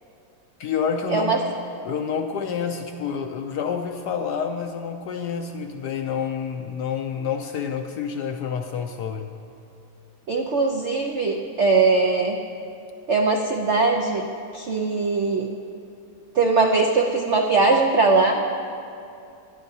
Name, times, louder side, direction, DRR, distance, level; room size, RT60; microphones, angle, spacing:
voice 1, 0.6-1.4 1.8-9.3, left 7 dB, 75° left, 5 dB, 1.0 m, -28 dB
voice 2, 10.3-12.4 13.1-14.3 14.5-15.5 16.3-18.5, right 3 dB, 80° right, 2 dB, 0.6 m, -20 dB
19.5 x 12.0 x 2.7 m, 2.5 s
omnidirectional pair, 2.2 m